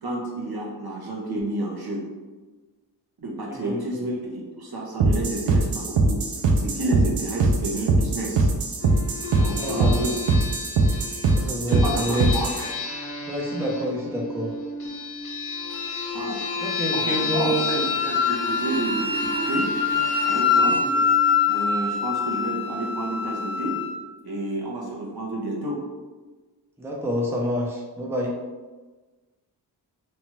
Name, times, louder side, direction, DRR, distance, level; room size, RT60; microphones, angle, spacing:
voice 1, 0.0-2.0 3.2-6.2 6.5-8.5 9.4-10.2 11.7-12.5 16.1-16.4 16.9-19.7 20.2-20.8 21.5-23.8 24.2-25.8, right 1 dB, 55° right, -2 dB, 0.9 m, -30 dB
voice 2, 3.5-4.2 9.5-10.1 11.3-12.3 13.3-14.5 16.6-17.6 20.7-21.0 26.8-28.3, equal, 5° right, -2 dB, 0.7 m, -28 dB
sound 1, 5.0-12.7, right 3 dB, 85° right, 0.5 m, -22 dB
sound 2, 8.8-22.0, left 3 dB, 40° left, 1.1 m, -32 dB
Wind instrument woodwind instrument, 15.7-23.9, left 5 dB, 25° left, 0.7 m, -25 dB
3.0 x 2.4 x 3.1 m, 1.3 s
cardioid pair, 45°, 44 cm